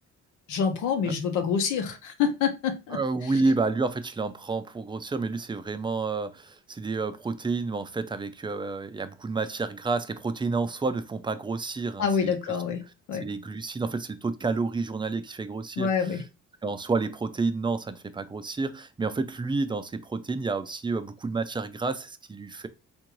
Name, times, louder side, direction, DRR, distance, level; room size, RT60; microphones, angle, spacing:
voice 1, 0.5-3.0 12.0-12.8 13.1-13.3 15.8-16.2, left 6 dB, 90° left, 0.9 m, -26 dB
voice 2, 2.9-12.4 13.2-16.2 16.6-22.7, right 3 dB, 15° right, 0.4 m, -30 dB
3.5 x 2.6 x 3.0 m
cardioid pair, 90°, 30 cm